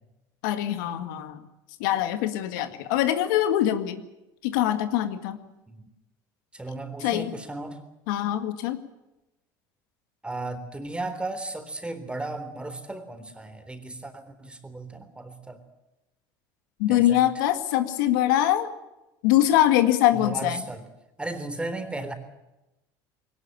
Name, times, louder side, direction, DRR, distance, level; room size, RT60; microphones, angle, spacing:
voice 1, 0.4-1.5 1.8-4.0 4.4-5.4 7.0-7.3 8.1-8.8 16.8-18.7 19.2-20.6, left 12 dB, 85° left, 9 dB, 1.9 m, -23 dB
voice 2, 6.5-7.8 10.2-15.6 16.9-17.2 20.1-20.8 21.2-22.1, right 2 dB, 10° right, 8 dB, 3.7 m, -35 dB
21.0 x 19.0 x 8.9 m, 0.96 s
supercardioid pair, 100°, 10 cm